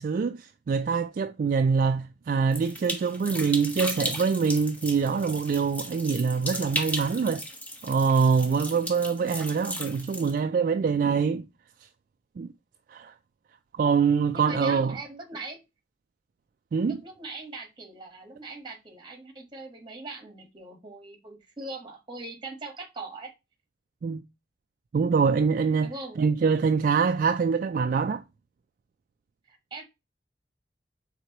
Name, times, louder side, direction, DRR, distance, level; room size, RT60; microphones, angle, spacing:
voice 1, 0.0-7.4 7.8-11.5 12.4-12.5 12.9-13.1 13.7-15.0 16.7-17.0 24.0-24.2 24.9-25.9 26.2-28.2, right 5 dB, 50° right, 0.3 m, -24 dB
sound 1, 2.5-10.3, left 1 dB, 10° left, 0.8 m, -35 dB
voice 2, 14.3-15.6 16.9-23.3 25.8-26.2 29.5-29.8, right 2 dB, 25° right, 1.4 m, -41 dB
4.5 x 3.6 x 2.9 m
head